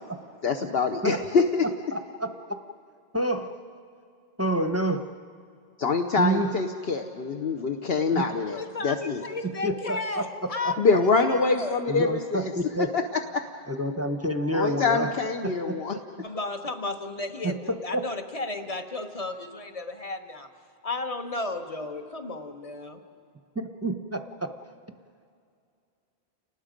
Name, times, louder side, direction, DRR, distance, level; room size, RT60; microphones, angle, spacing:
voice 1, 0.4-1.4 5.8-9.2 10.8-12.5 14.5-15.9, left 4 dB, 70° left, 4 dB, 1.1 m, -25 dB
voice 2, 1.9-2.6 3.1-3.6 4.4-5.1 6.2-6.6 8.1-8.3 9.6-10.0 10.6-10.7 11.9-12.9 13.7-15.1 15.4-16.0 17.4-18.0 23.8-24.5, right 1 dB, 15° right, 7 dB, 0.7 m, -28 dB
voice 3, 8.5-10.8 11.1-11.8 16.2-20.5 20.8-23.0, left 3 dB, 35° left, 6 dB, 1.3 m, -33 dB
29.5 x 19.5 x 5.2 m, 2.4 s
omnidirectional pair, 1.1 m